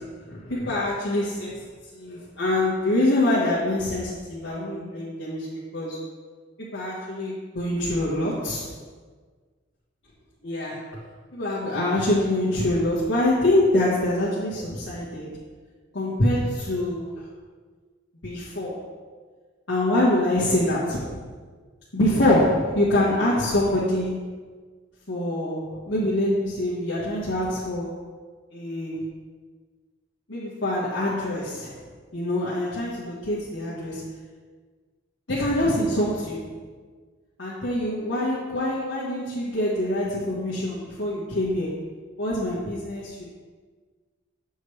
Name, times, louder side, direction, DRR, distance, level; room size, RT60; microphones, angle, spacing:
voice 1, 0.0-1.7 1.9-6.0 6.7-8.7 10.4-10.8 11.3-15.3 15.9-17.1 18.2-18.8 19.7-21.2 21.9-24.2 25.1-28.0 28.5-29.0 30.3-31.8 32.1-34.0 35.3-36.5 37.4-41.8 42.2-43.2, left 1 dB, 75° left, -8 dB, 1.5 m, -25 dB
8.4 x 6.3 x 3.3 m, 1.5 s
head